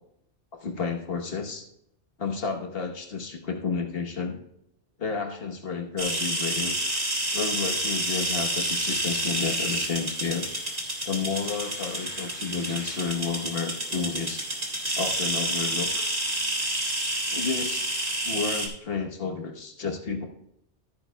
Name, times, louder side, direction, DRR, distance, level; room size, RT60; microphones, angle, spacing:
voice 1, 0.6-1.7 2.2-4.4 5.0-6.7 7.3-10.5 11.1-14.4 15.0-16.0 17.3-20.3, left 5 dB, 60° left, 3 dB, 1.3 m, -31 dB
sound 1, 6.0-18.7, right 1 dB, 35° right, 1.8 m, -29 dB
14.0 x 9.4 x 2.3 m, 0.76 s
omnidirectional pair, 1.1 m